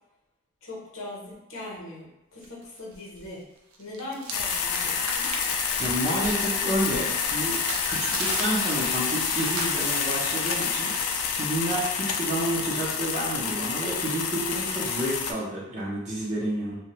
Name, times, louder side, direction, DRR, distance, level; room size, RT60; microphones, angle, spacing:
voice 1, 0.6-3.5 3.8-5.3, left 2 dB, 60° left, -4 dB, 0.8 m, -40 dB
sound 1, 2.4-3.3 3.6-11.4, right 3 dB, 75° right, 0.4 m, -39 dB
sound 2, 4.3-15.3, left 6 dB, 85° left, 0.3 m, -28 dB
voice 2, 5.8-10.9 11.3-16.8, right 1 dB, 35° right, -5 dB, 0.6 m, -30 dB
2.5 x 2.1 x 2.9 m, 0.98 s
head